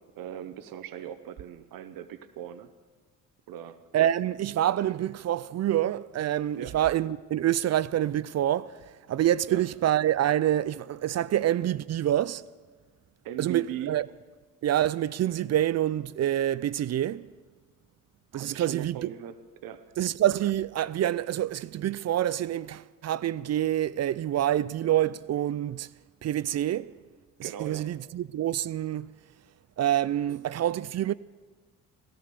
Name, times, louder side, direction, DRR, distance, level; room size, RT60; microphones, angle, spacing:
voice 1, 0.0-2.7 3.5-3.8 6.6-6.8 9.5-9.6 13.2-14.0 18.3-19.3 19.6-19.9 27.4-27.9, right 11 dB, 75° right, 0.9 m, -39 dB
voice 2, 3.9-8.8 9.1-12.5 13.4-14.1 14.6-17.3 18.3-19.1 20.0-25.9 26.2-26.9 27.4-29.1 29.8-31.1, right 12 dB, 50° right, 0.4 m, -27 dB
16.0 x 13.0 x 6.8 m
supercardioid pair, 70°, 34 cm